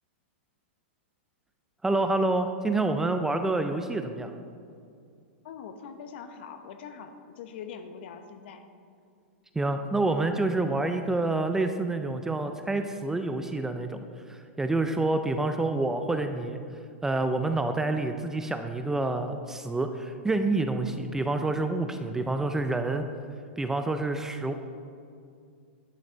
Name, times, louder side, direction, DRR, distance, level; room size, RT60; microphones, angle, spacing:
voice 1, 1.8-4.3 9.6-14.0 14.3-16.6 17.0-23.0 23.6-24.5, right 2 dB, 5° right, 7 dB, 0.3 m, -28 dB
voice 2, 5.4-8.6, left 6 dB, 60° left, 8 dB, 0.9 m, -43 dB
10.5 x 6.4 x 4.5 m, 2.3 s
hypercardioid pair, 140°, 6 cm